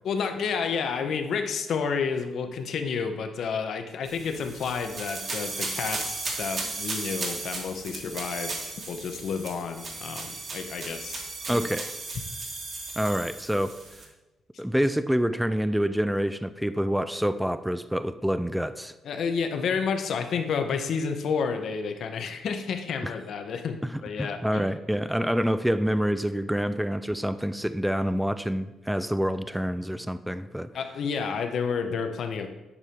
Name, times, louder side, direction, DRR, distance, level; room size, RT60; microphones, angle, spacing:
voice 1, 0.0-11.6 19.0-24.7 30.7-32.5, left 6 dB, 65° left, 7 dB, 0.8 m, -30 dB
sound 1, 4.0-14.0, right 3 dB, 50° right, 1.7 m, -35 dB
voice 2, 11.5-11.9 13.0-13.8 14.6-18.9 23.0-23.1 24.2-30.7, equal, 5° right, 12 dB, 0.3 m, -27 dB
9.7 x 4.9 x 2.9 m, 1.1 s
cardioid pair, 90°, 0 cm